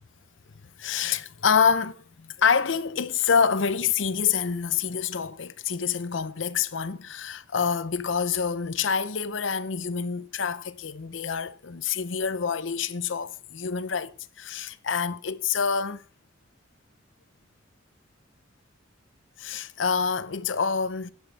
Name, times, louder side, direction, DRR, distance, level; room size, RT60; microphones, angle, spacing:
voice 1, 0.8-16.0 19.4-21.1, left 6 dB, 85° left, 0.7 m, -27 dB
12.0 x 11.0 x 4.2 m
head